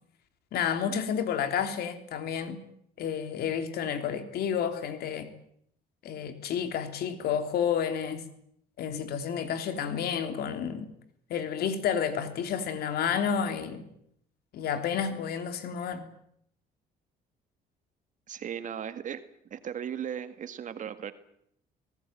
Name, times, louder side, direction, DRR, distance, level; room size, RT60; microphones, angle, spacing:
voice 1, 0.5-2.6 3.0-5.3 6.0-8.2 8.8-10.9 11.3-13.9 14.5-16.1, left 8 dB, 70° left, 3.3 m, -30 dB
voice 2, 18.3-19.2 19.5-21.1, right 8 dB, 50° right, 1.9 m, -36 dB
23.5 x 19.0 x 9.2 m
cardioid pair, 110°, 17 cm